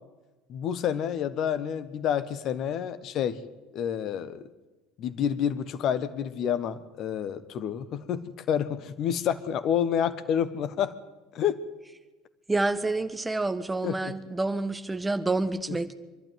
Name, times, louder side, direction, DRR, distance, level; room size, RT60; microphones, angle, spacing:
voice 1, 0.5-3.4 3.7-4.5 5.0-10.9 11.3-11.6 13.8-14.0 15.7-15.8, left 9 dB, 45° left, 14 dB, 1.3 m, -29 dB
voice 2, 12.5-15.9, right 2 dB, 15° right, 11 dB, 1.4 m, -28 dB
26.0 x 12.0 x 9.5 m, 1.2 s
figure-of-eight pair, 65°, 0 cm